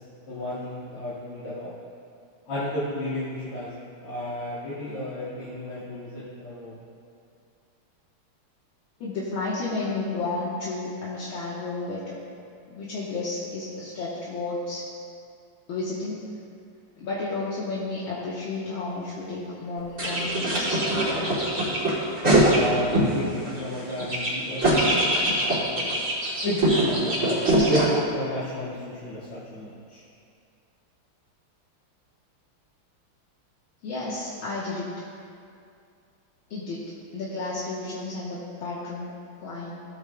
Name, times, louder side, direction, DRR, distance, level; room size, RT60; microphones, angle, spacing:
voice 1, 0.3-1.7 2.5-3.7 4.0-6.8 22.5-25.8 26.4-30.0, equal, 90° left, -11 dB, 3.0 m, -32 dB
voice 2, 9.0-12.2 12.7-14.8 15.7-16.2 17.0-21.5 33.8-34.9 36.5-36.8 37.1-39.1 39.4-39.8, left 3 dB, 70° left, -7 dB, 2.0 m, -32 dB
sound 1, 20.0-23.1 23.5-27.9, right 1 dB, 35° right, 3.0 m, -23 dB
16.5 x 8.9 x 2.3 m, 2.4 s
omnidirectional pair, 2.4 m